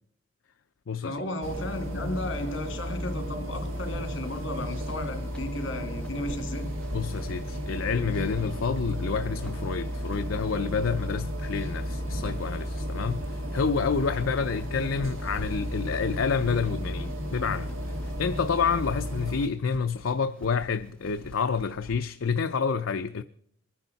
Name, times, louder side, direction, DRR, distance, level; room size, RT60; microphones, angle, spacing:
voice 1, 1.0-6.8, left 1 dB, 70° left, 2.2 m, -34 dB
sound 1, 1.4-19.5, equal, 85° right, 1.5 m, -33 dB
sound 2, 3.6-22.0, left 1 dB, 5° left, 1.6 m, -49 dB
voice 2, 6.9-23.2, left 5 dB, 85° left, 0.5 m, -29 dB
23.0 x 10.0 x 4.0 m
head